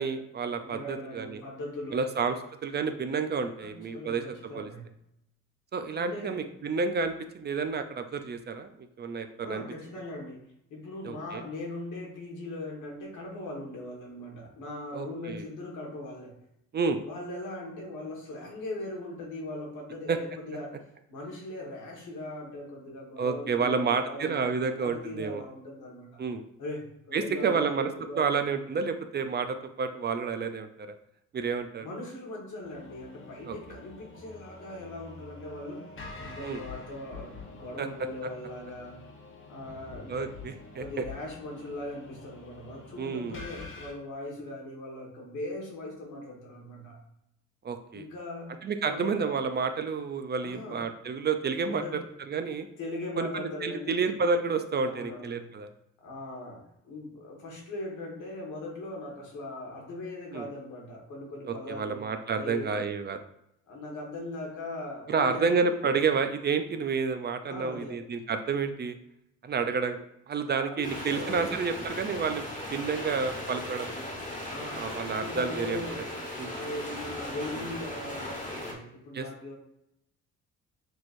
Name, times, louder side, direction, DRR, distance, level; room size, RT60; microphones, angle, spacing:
voice 1, 0.0-1.4 1.9-2.4 2.6-4.7 5.7-9.6 11.0-11.4 14.9-15.4 16.7-17.0 20.1-20.2 23.2-25.4 26.2-26.4 27.1-27.9 28.2-31.0 31.3-31.9 33.5-33.6 36.4-36.6 37.8-37.9 38.2-38.3 40.1-41.0 43.0-43.4 47.6-48.1 48.6-52.0 52.3-52.7 53.2-55.7 60.3-60.5 61.4-63.2 65.1-69.0 69.4-73.9 74.7-76.0 76.4-76.6 79.1-79.3, right 5 dB, 35° right, 8 dB, 0.4 m, -30 dB
voice 2, 0.6-2.1 3.6-5.0 6.0-6.4 9.4-10.4 10.7-16.4 17.0-26.2 26.6-28.3 31.8-35.9 36.2-39.1 39.5-40.3 40.8-47.0 47.9-48.6 48.9-49.1 50.4-50.9 51.7-52.1 52.8-54.1 54.8-55.5 56.0-62.1 62.3-62.8 63.7-65.6 67.5-68.0 70.5-71.5 74.5-74.8 75.1-76.0 76.5-79.6, left 1 dB, 80° left, -1 dB, 1.5 m, -40 dB
sound 1, 32.6-43.9, left 3 dB, 45° left, 1.0 m, -46 dB
sound 2, 70.8-78.7, left 1 dB, 25° left, 1.2 m, -38 dB
6.2 x 3.0 x 2.5 m, 0.79 s
cardioid pair, 90°, 30 cm